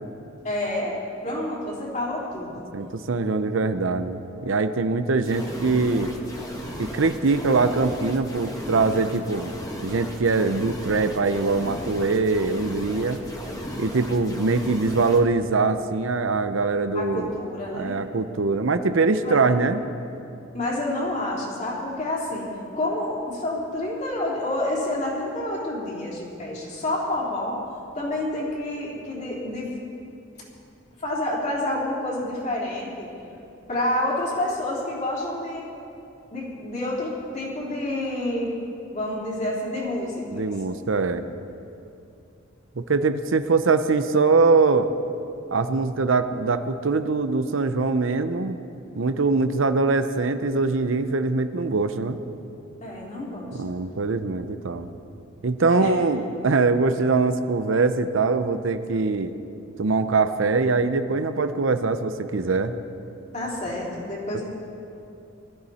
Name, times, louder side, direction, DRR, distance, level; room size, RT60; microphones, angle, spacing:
voice 1, 0.4-1.0 1.2-2.6 16.9-18.0 19.2-19.4 20.5-22.5 22.7-27.6 27.9-29.7 31.0-33.1 33.7-35.7 36.3-38.5 38.9-40.4 52.8-53.8 55.8-55.9 63.3-64.4, left 1 dB, 35° left, -4 dB, 3.6 m, -28 dB
voice 2, 2.7-6.1 6.8-9.5 9.8-13.2 13.8-17.3 17.7-19.8 40.3-41.2 42.8-44.9 45.5-48.6 49.0-52.2 53.5-54.9 55.4-59.3 59.8-62.7 64.3-64.4, right 3 dB, 70° right, 10 dB, 0.7 m, -23 dB
sound 1, 5.2-15.2, equal, 20° left, 1.7 m, -36 dB
20.5 x 13.5 x 4.3 m, 2.7 s
head